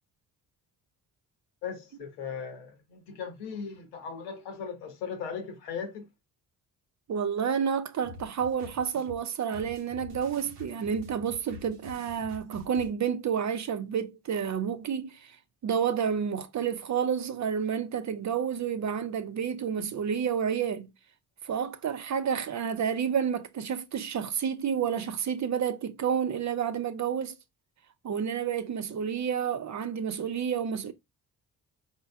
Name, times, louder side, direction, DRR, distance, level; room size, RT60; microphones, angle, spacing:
voice 1, 1.6-6.1, left 6 dB, 85° left, 1.2 m, -38 dB
voice 2, 7.1-15.4 15.6-20.9 21.4-27.4 28.0-30.9, right 7 dB, 40° right, 0.6 m, -30 dB
sound 1, 8.0-12.9, left 3 dB, 85° right, 0.9 m, -47 dB
4.7 x 4.3 x 2.3 m
hypercardioid pair, 45°, 46 cm